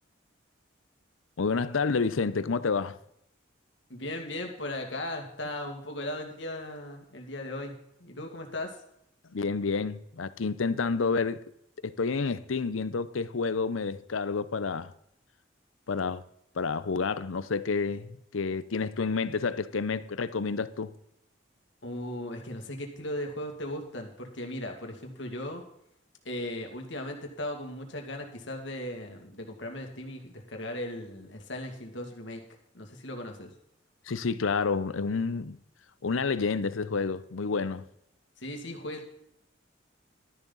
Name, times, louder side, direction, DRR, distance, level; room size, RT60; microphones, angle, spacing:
voice 1, 1.4-3.0 9.3-11.4 11.8-14.9 15.9-16.2 16.6-20.9 34.1-35.6 36.0-37.8, left 4 dB, 90° left, 0.7 m, -29 dB
voice 2, 3.9-8.8 21.8-25.6 26.2-32.4 32.7-33.5 38.4-39.1, left 1 dB, 70° left, 2.2 m, -37 dB
13.0 x 10.5 x 4.0 m
head